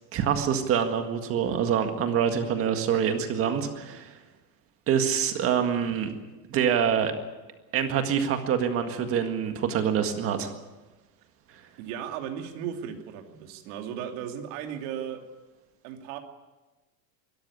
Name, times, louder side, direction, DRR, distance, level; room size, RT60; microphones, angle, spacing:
voice 1, 0.1-4.1 4.9-6.1 6.5-7.1 7.7-10.5, right 8 dB, 25° right, 6 dB, 1.8 m, -25 dB
voice 2, 11.8-15.2 15.8-16.2, right 9 dB, 50° right, 4 dB, 2.8 m, -36 dB
23.0 x 14.0 x 9.8 m, 1.2 s
supercardioid pair, 165°, 50 cm